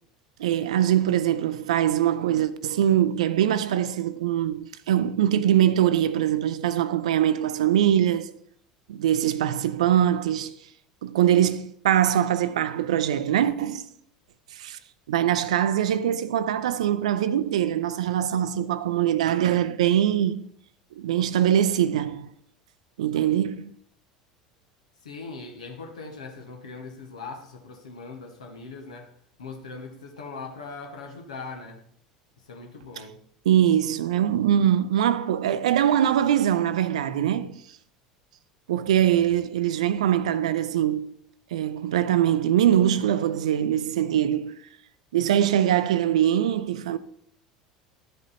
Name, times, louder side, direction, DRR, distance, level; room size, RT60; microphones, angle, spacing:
voice 1, 0.4-8.3 8.9-10.5 11.0-13.9 14.5-14.8 15.1-20.4 21.0-22.3 23.0-23.7 33.5-37.6 38.7-41.1 41.5-44.6 45.1-47.0, right 10 dB, 75° right, 0.4 m, -22 dB
voice 2, 25.0-29.1 29.4-31.8 32.4-33.2, left 4 dB, 80° left, 1.2 m, -40 dB
11.5 x 5.1 x 4.2 m
figure-of-eight pair, 75°, 4 cm